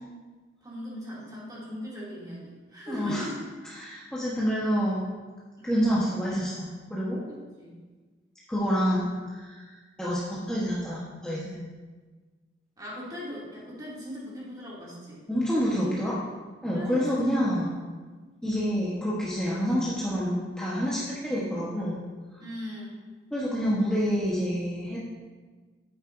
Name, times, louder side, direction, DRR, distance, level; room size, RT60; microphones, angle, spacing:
voice 1, 0.6-3.4 5.6-5.8 7.3-7.8 12.8-15.2 16.7-17.7 22.4-23.0, equal, 20° right, -7 dB, 2.6 m, -39 dB
voice 2, 2.9-3.3 3.8-5.1 5.6-7.2 8.5-11.6 15.3-16.2 16.6-17.7 18.4-22.0 23.3-25.0, equal, 5° left, -8 dB, 1.1 m, -28 dB
9.8 x 8.6 x 2.6 m, 1.4 s
head